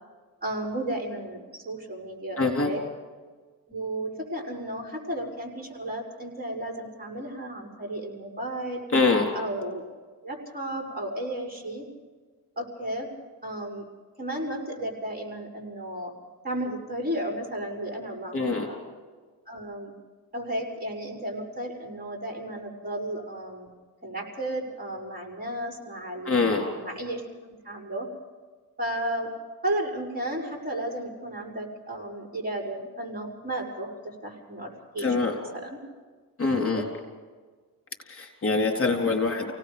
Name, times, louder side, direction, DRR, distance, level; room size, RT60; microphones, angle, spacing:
voice 1, 0.4-2.8 3.7-8.8 9.3-9.8 10.2-11.9 12.6-13.1 13.4-13.8 14.2-16.1 16.4-18.8 19.5-19.9 20.3-23.7 24.0-27.2 27.6-28.1 28.8-29.3 29.6-35.7 36.6-36.8, right 1 dB, 25° right, -1 dB, 5.8 m, -33 dB
voice 2, 2.4-2.7 8.9-9.3 18.3-18.7 26.2-26.7 35.0-35.3 36.4-36.9 38.1-39.5, left 4 dB, 35° left, 2 dB, 3.9 m, -24 dB
29.0 x 18.0 x 5.3 m, 1.4 s
cardioid pair, 100°, 36 cm